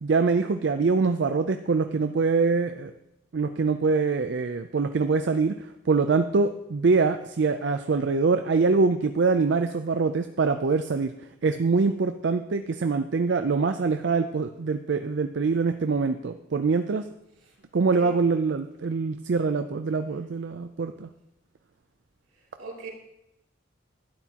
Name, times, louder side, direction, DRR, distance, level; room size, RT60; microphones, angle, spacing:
voice 1, 0.0-2.9 3.3-11.1 11.4-17.0 17.7-21.1, right 4 dB, 65° right, 8 dB, 0.4 m, -24 dB
voice 2, 17.5-18.2 22.6-22.9, right 3 dB, 85° right, -3 dB, 2.9 m, -42 dB
12.0 x 10.5 x 2.9 m, 0.85 s
head